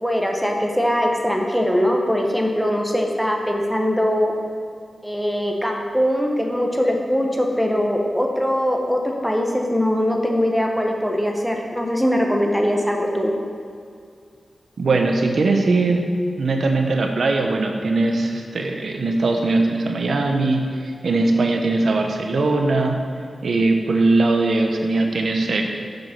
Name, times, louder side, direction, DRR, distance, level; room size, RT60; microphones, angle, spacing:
voice 1, 0.0-4.3 5.0-13.3, equal, ahead, 1 dB, 1.4 m, -21 dB
voice 2, 14.8-16.1 16.4-23.0 23.4-25.6, right 3 dB, 75° right, 3 dB, 0.9 m, -20 dB
7.6 x 5.3 x 6.0 m, 2.3 s
cardioid pair, 50°, 0 cm